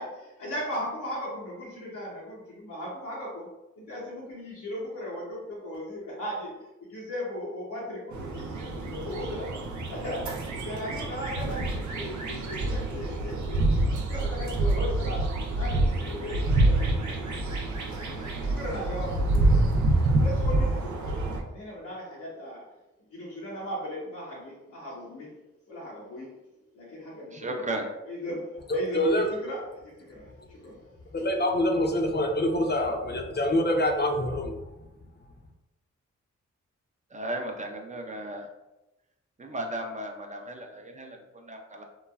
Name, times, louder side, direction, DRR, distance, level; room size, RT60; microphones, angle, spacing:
voice 1, 0.0-3.5 3.8-6.5 6.9-9.5 9.9-15.2 15.5-17.0 18.1-19.6 20.2-22.7 23.1-25.4 25.7-26.4 26.7-27.7 28.0-30.9, left 1 dB, 80° left, -6 dB, 0.8 m, -37 dB
sound 1, 8.1-21.4, right 2 dB, 70° right, 0.6 m, -27 dB
voice 2, 27.3-27.9 37.1-38.5 39.4-41.8, right 1 dB, 25° right, 2 dB, 0.6 m, -35 dB
voice 3, 28.7-29.2 31.1-34.6, left 1 dB, 35° left, 2 dB, 0.5 m, -25 dB
3.0 x 2.2 x 2.3 m, 0.98 s
supercardioid pair, 40°, 31 cm